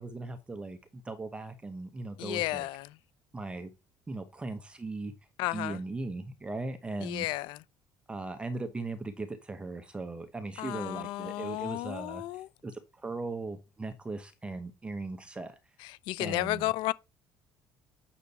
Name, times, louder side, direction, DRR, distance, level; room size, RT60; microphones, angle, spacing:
voice 1, 0.0-2.7 3.3-3.7 4.1-5.1 5.5-7.3 8.1-15.5 16.2-16.7, right 3 dB, 15° right, 1.0 m, -38 dB
voice 2, 2.2-2.9 5.4-5.8 7.0-7.6 10.6-12.5 15.8-16.9, left 17 dB, 85° left, 0.5 m, -33 dB
8.5 x 6.7 x 4.2 m
cardioid pair, 145°, 8 cm